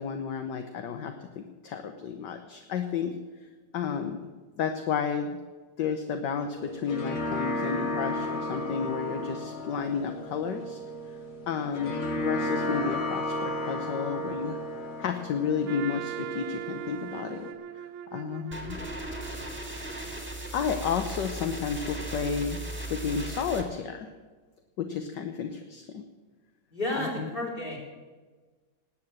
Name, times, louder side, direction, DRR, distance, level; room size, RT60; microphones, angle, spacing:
voice 1, 0.0-3.2 3.7-4.3 4.6-5.4 5.8-10.8 11.5-14.6 15.0-17.5 18.1-18.8 20.5-24.1 24.8-26.0 27.2-27.3, left 6 dB, 65° left, 6 dB, 1.5 m, -32 dB
sound 1, 6.6-17.5, left 1 dB, 45° left, 1.8 m, -34 dB
Trumpet, 15.7-20.7, right 11 dB, 85° right, 1.6 m, -41 dB
sound 2, 18.5-23.6, right 1 dB, 5° right, 2.4 m, -37 dB
voice 2, 26.7-27.8, left 1 dB, 25° left, 0 dB, 4.2 m, -31 dB
19.0 x 8.8 x 7.7 m, 1.4 s
omnidirectional pair, 2.2 m